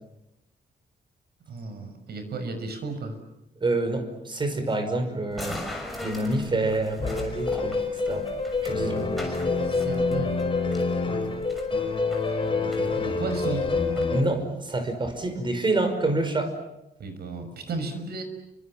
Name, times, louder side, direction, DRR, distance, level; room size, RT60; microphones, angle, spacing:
voice 1, 1.5-3.2 9.0-9.4 9.7-10.4 12.5-13.7 17.0-18.2, right 3 dB, 75° right, 8 dB, 6.1 m, -34 dB
voice 2, 3.6-5.6 6.0-8.3 8.6-9.2 14.1-16.5, right 2 dB, 30° right, 8 dB, 5.4 m, -27 dB
sound 1, 5.3-14.0, left 1 dB, ahead, 6.4 m, -41 dB
sound 2, 7.0-14.2, left 4 dB, 30° left, 4.2 m, -27 dB
30.0 x 25.0 x 7.5 m, 0.90 s
wide cardioid pair, 150°, 17 cm